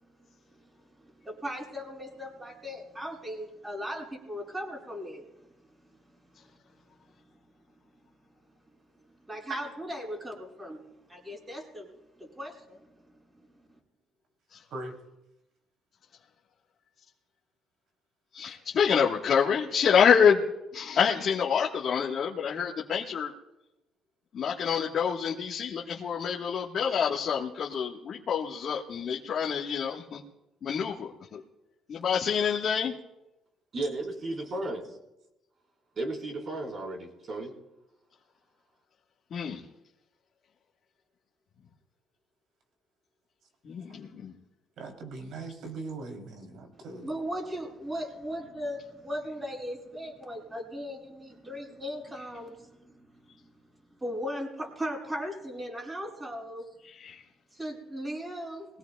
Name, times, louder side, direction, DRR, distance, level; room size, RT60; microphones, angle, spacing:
voice 1, 1.2-5.2 9.3-11.9 12.2-12.8 47.0-53.1 53.4-53.5 54.0-56.7 57.5-58.7, equal, 20° right, -2 dB, 6.7 m, -37 dB
voice 2, 18.3-20.4 20.7-23.3 24.3-30.2 30.6-31.4 31.9-32.9 39.3-39.6 43.6-44.3 57.0-57.2, left 7 dB, 55° left, -2 dB, 1.4 m, -27 dB
voice 3, 33.7-34.8 36.0-37.5, right 2 dB, 50° right, 0 dB, 4.2 m, -34 dB
voice 4, 44.8-47.1, right 3 dB, 70° right, 3 dB, 3.2 m, -40 dB
22.5 x 17.5 x 2.3 m, 0.95 s
cardioid pair, 90°, 0 cm